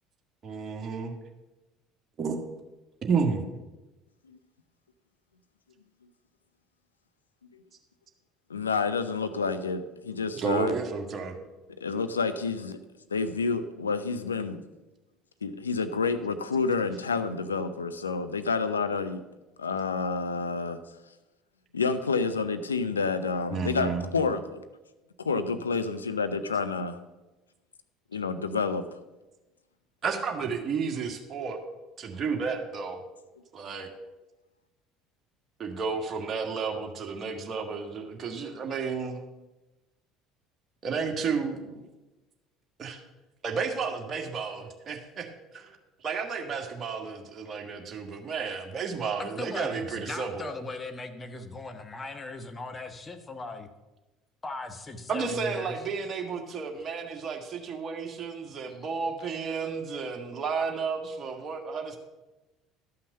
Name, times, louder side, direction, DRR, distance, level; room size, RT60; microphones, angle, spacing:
voice 1, 0.4-1.1 2.2-2.3 3.0-3.5 10.3-11.3 23.5-24.0 30.0-31.6 32.0-33.0 33.5-33.9 35.6-39.2 40.8-41.9 42.8-43.0 43.4-45.3 45.5-50.4 55.1-62.0, right 5 dB, 35° right, 3 dB, 1.7 m, -32 dB
voice 2, 8.5-10.7 11.8-12.8 13.1-14.6 15.4-19.2 19.6-20.8 21.7-24.6 25.2-27.0 28.1-28.8, left 4 dB, 85° left, 10 dB, 0.6 m, -29 dB
voice 3, 49.2-53.7 54.4-55.7, left 2 dB, 25° left, 7 dB, 1.3 m, -39 dB
12.0 x 5.8 x 6.7 m, 1.1 s
figure-of-eight pair, 65°, 0 cm